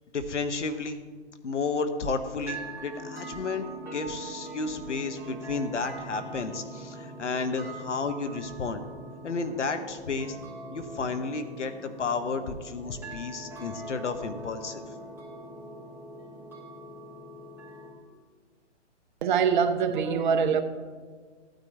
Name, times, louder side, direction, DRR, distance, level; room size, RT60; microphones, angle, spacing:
voice 1, 0.1-1.0 1.4-3.7 3.9-8.8 9.2-10.4 10.7-14.8, left 4 dB, 75° left, 9 dB, 1.2 m, -32 dB
sound 1, 2.5-17.9, right 2 dB, 5° right, 2.1 m, -42 dB
voice 2, 19.2-20.6, right 6 dB, 40° right, 8 dB, 0.9 m, -24 dB
14.5 x 9.1 x 3.4 m, 1.5 s
figure-of-eight pair, 135°, 36 cm